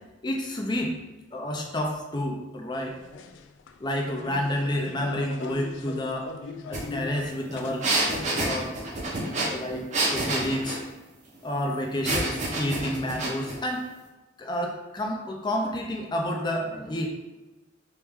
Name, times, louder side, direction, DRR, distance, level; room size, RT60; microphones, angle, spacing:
voice 1, 0.2-0.9 1.3-3.0 3.8-6.3 6.7-7.9 8.4-8.7 9.5-10.8 11.4-13.9 14.4-17.1, left 1 dB, 25° left, 1 dB, 0.5 m, -29 dB
sound 1, 2.7-8.4, left 4 dB, 85° left, 0.3 m, -40 dB
sound 2, 6.7-6.8 7.1-10.8 12.0-13.6, right 2 dB, 40° right, 0.7 m, -28 dB
3.1 x 3.1 x 3.5 m, 1.1 s
head